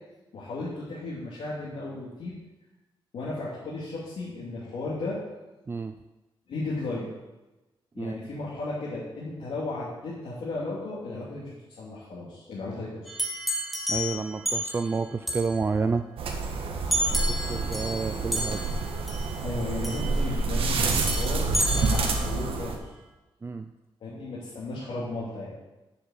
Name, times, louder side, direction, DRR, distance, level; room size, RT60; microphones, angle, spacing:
voice 1, 0.3-2.4 3.1-5.2 6.5-7.1 7.9-13.1 19.4-22.8 24.0-25.5, left 2 dB, 80° left, -8 dB, 2.9 m, -34 dB
sound 1, 13.1-14.9 15.3-15.5 16.9-18.1 18.3-18.8 19.1-19.3 19.8-20.3 20.9-22.2, equal, ahead, 1.8 m, -30 dB
voice 2, 13.9-16.0 17.1-18.6 23.4-23.7, right 4 dB, 25° right, 8 dB, 0.4 m, -30 dB
sound 2, 16.2-22.8, right 3 dB, 75° right, 1.5 m, -28 dB
7.8 x 6.7 x 8.0 m, 1.1 s
wide cardioid pair, 130°, 10 cm